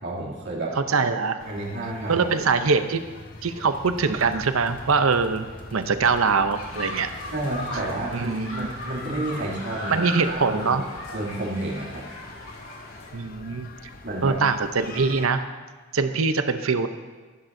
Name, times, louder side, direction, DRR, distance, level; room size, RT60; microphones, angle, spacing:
voice 1, 0.0-0.8 1.4-2.3 7.3-10.9 11.1-12.1 14.0-14.4, right 2 dB, 60° right, -5 dB, 2.7 m, -31 dB
voice 2, 0.8-1.4 2.1-3.0 3.4-7.1 8.1-8.7 9.9-10.8 13.1-13.7 14.2-15.4 15.9-16.9, right 4 dB, 80° right, 10 dB, 0.7 m, -23 dB
sound 1, 1.4-15.3, left 3 dB, 45° left, 0.7 m, -44 dB
sound 2, 3.7-9.2, equal, 25° left, 1.1 m, -48 dB
sound 3, 6.5-13.1, left 1 dB, 75° left, 4.2 m, -37 dB
14.5 x 12.0 x 2.7 m, 1.4 s
head